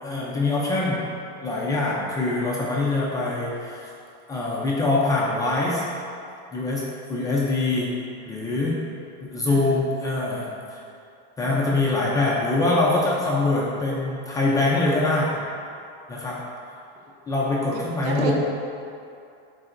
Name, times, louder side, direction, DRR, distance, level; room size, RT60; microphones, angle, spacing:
voice 1, 0.0-1.1 1.4-3.9 4.3-5.8 6.5-7.9 8.3-8.8 9.2-10.8 11.4-15.4 16.1-16.4 17.3-18.3, left 2 dB, 10° left, -6 dB, 0.4 m, -24 dB
voice 2, 9.4-9.8 11.4-12.0 17.7-18.3, right 5 dB, 70° right, 0 dB, 1.1 m, -34 dB
10.5 x 3.9 x 2.5 m, 2.5 s
supercardioid pair, 160°, 34 cm